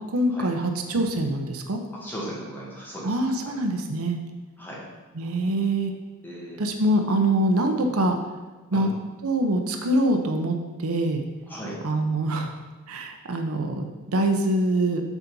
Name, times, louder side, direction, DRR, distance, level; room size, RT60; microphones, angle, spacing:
voice 1, 0.1-1.8 3.0-4.2 5.2-5.9 6.6-8.2 8.7-8.9 9.2-11.2 11.8-12.5 12.9-15.0, right 1 dB, 85° right, 4 dB, 0.7 m, -24 dB
voice 2, 1.9-3.2 3.4-3.6 4.6-4.8 6.2-6.6 7.8-7.9 8.7-8.9 11.5-11.8, right 1 dB, 10° left, -5 dB, 1.7 m, -37 dB
7.1 x 4.0 x 5.3 m, 1.3 s
head